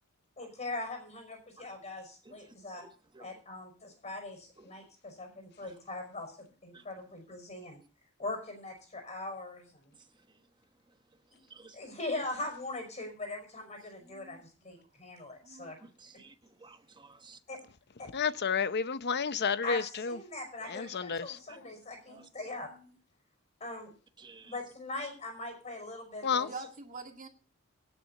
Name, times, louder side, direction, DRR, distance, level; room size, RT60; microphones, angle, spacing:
voice 1, 0.4-2.8 3.2-7.8 8.2-9.9 11.7-15.8 17.5-17.6 18.0-18.1 19.6-22.7 23.6-23.9 24.4-26.5, left 2 dB, 35° left, 5.3 m, -41 dB
voice 2, 14.0-14.5 14.8-14.9 15.4-15.7 22.0-22.3 22.6-23.0 26.5-27.3, right 4 dB, 40° right, 2.2 m, -47 dB
voice 3, 15.8-16.3 16.6-17.4 20.7-21.2 21.5-21.6 22.2-22.3 24.2-24.5, right 4 dB, 20° right, 1.1 m, -54 dB
voice 4, 18.1-20.2 20.7-21.4 26.2-26.5, left 6 dB, 50° left, 0.8 m, -31 dB
18.0 x 7.7 x 4.0 m
head